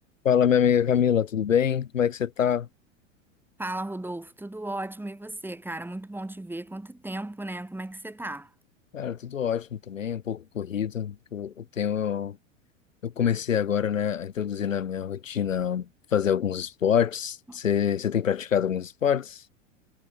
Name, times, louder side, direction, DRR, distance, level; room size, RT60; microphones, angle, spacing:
voice 1, 0.3-2.7 8.9-12.4 13.0-19.4, left 8 dB, 75° left, 1.8 m, -25 dB
voice 2, 3.6-8.5, right 1 dB, 5° right, 7.5 m, -35 dB
figure-of-eight pair, 85°, 39 cm